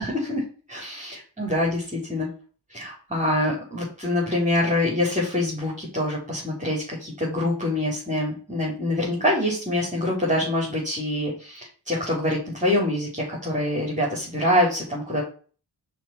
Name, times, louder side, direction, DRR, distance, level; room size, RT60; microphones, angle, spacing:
voice 1, 0.0-2.3 2.7-15.2, left 1 dB, 15° right, -5 dB, 3.6 m, -25 dB
5.8 x 4.4 x 6.0 m, 0.40 s
cardioid pair, 50°, 46 cm